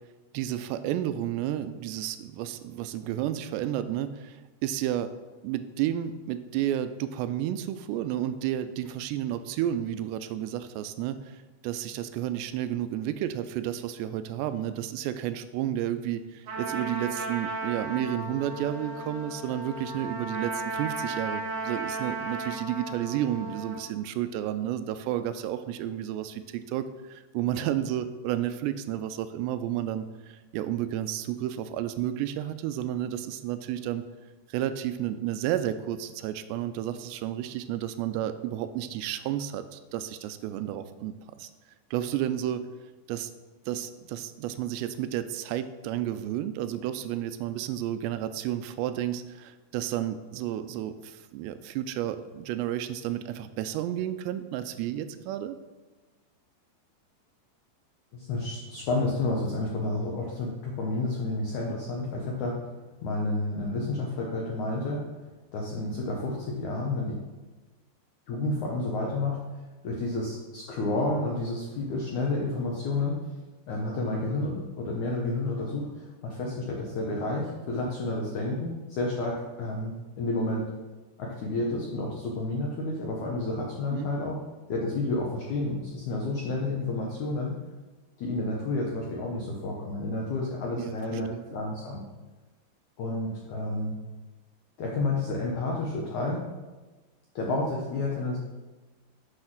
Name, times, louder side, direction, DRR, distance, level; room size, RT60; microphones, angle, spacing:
voice 1, 0.3-5.1 5.4-34.0 34.5-41.1 41.4-41.5 41.9-42.6 43.1-43.3 43.7-55.6 83.9-84.1 90.8-91.4, right 11 dB, 85° right, 11 dB, 2.7 m, -31 dB
Trumpet, 16.5-23.8, right 2 dB, 60° right, 2.9 m, -35 dB
voice 2, 58.1-62.6 63.0-65.1 65.5-67.2 68.3-69.4 69.8-73.2 73.7-80.7 81.2-84.4 84.7-87.5 88.2-92.0 93.0-94.0 94.8-96.4 97.4-98.4, left 2 dB, 75° left, -2 dB, 1.7 m, -30 dB
7.8 x 6.4 x 6.0 m, 1.2 s
omnidirectional pair, 5.0 m